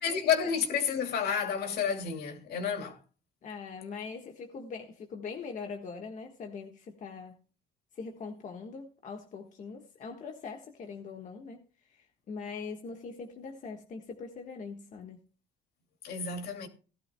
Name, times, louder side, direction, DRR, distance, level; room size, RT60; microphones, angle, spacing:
voice 1, 0.0-3.0 16.0-16.7, left 7 dB, 70° left, 2.6 m, -30 dB
voice 2, 3.4-7.4 7.9-15.2, left 5 dB, 50° left, 1.5 m, -42 dB
18.0 x 12.5 x 2.3 m
cardioid pair, 110°, 17 cm